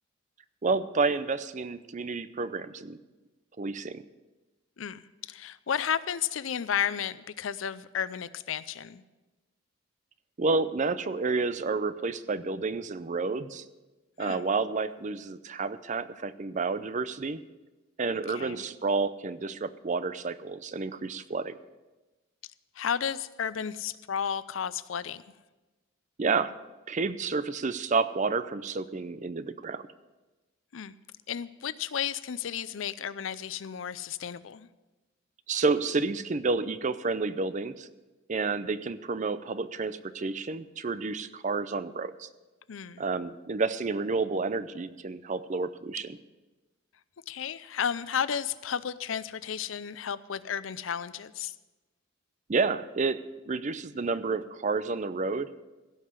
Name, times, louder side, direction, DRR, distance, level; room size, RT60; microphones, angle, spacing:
voice 1, 0.6-3.0 3.6-4.0 10.4-13.6 14.2-17.4 18.0-21.6 26.2-26.5 26.9-29.8 35.5-37.9 38.3-42.3 43.0-46.2 52.5-55.5, right 4 dB, 40° right, 14 dB, 0.5 m, -30 dB
voice 2, 4.8-9.0 14.2-14.5 18.3-18.7 22.8-25.2 30.7-30.9 31.3-34.7 42.7-43.0 47.3-51.5, left 8 dB, 80° left, 16 dB, 0.5 m, -33 dB
16.5 x 5.7 x 8.0 m, 1.2 s
head